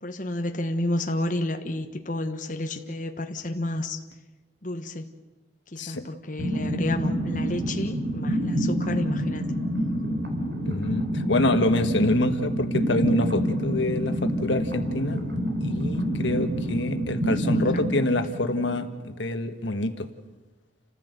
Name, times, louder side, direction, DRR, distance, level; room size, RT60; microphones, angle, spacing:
voice 1, 0.0-4.0 4.6-5.1 5.7-9.5 16.7-16.8 17.4-17.7, left 1 dB, 45° left, 4 dB, 1.3 m, -30 dB
sound 1, 6.4-19.1, equal, 65° right, 3.9 m, -27 dB
voice 2, 10.6-15.2 15.6-20.1, left 1 dB, 85° left, 7 dB, 1.6 m, -26 dB
29.0 x 15.0 x 8.1 m, 1.2 s
head